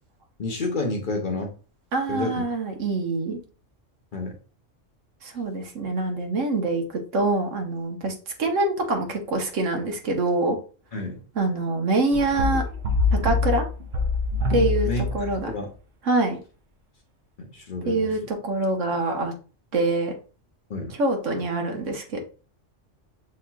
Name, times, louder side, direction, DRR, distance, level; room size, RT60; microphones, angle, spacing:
voice 1, 0.4-1.5 2.1-2.4 4.1-4.3 10.9-11.1 14.8-15.7 17.4-18.2 20.7-20.9, left 2 dB, 45° left, 1 dB, 0.8 m, -30 dB
voice 2, 1.9-3.4 5.2-8.1 8.4-10.6 11.4-12.6 13.2-13.7 14.5-15.5 16.1-16.4 17.8-19.3 19.7-20.1 21.0-22.2, right 2 dB, 75° right, 3 dB, 1.2 m, -25 dB
sound 1, 12.1-15.5, left 3 dB, 50° right, 0.6 m, -25 dB
6.5 x 2.9 x 2.2 m, 0.37 s
omnidirectional pair, 1.3 m